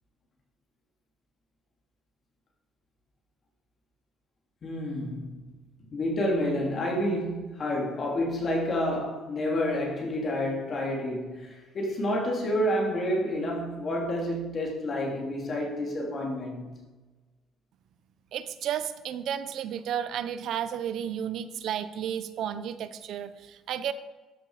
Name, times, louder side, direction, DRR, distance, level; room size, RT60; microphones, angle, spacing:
voice 1, 4.6-5.4 5.9-16.7, left 1 dB, 35° left, 3.3 m, -29 dB
voice 2, 18.3-23.9, right 9 dB, 60° right, 0.8 m, -32 dB
14.0 x 10.5 x 5.0 m
cardioid pair, 150°, 0 cm